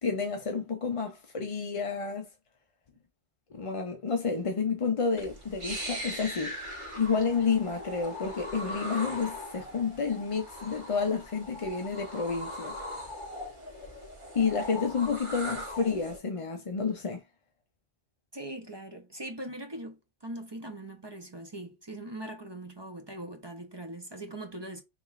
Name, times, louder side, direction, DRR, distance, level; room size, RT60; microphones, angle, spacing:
voice 1, 0.0-2.3 3.5-12.8 14.3-17.2, left 5 dB, 40° left, 0.5 m, -30 dB
sound 1, 5.2-16.2, left 1 dB, 45° right, 1.6 m, -40 dB
voice 2, 18.3-24.8, right 1 dB, 30° right, 0.5 m, -41 dB
5.1 x 3.1 x 2.4 m
omnidirectional pair, 1.2 m